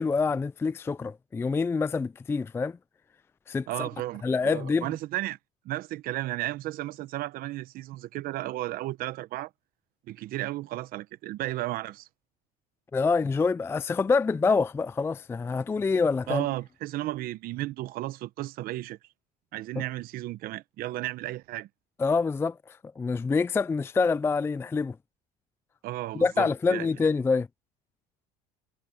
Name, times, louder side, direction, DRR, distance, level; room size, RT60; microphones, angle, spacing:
voice 1, 0.0-2.8 3.5-3.9 4.2-4.9 12.9-16.4 19.8-19.9 22.0-22.6 23.0-25.0 26.1-27.5, left 4 dB, 15° left, 0.4 m, -26 dB
voice 2, 3.7-5.4 5.6-9.5 10.1-12.1 16.3-19.0 19.5-21.7 25.8-26.9, right 16 dB, 60° right, 0.9 m, -34 dB
supercardioid pair, 110°, 17 cm